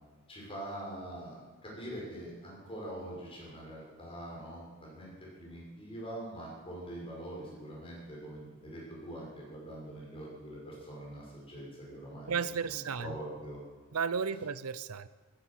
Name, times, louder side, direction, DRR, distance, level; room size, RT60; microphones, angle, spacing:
voice 1, 0.3-12.3 12.6-13.6, right 1 dB, 25° left, -3 dB, 6.1 m, -44 dB
voice 2, 12.3-13.2 13.9-15.1, right 6 dB, 85° right, 16 dB, 0.6 m, -33 dB
14.0 x 11.5 x 7.4 m, 1.3 s
head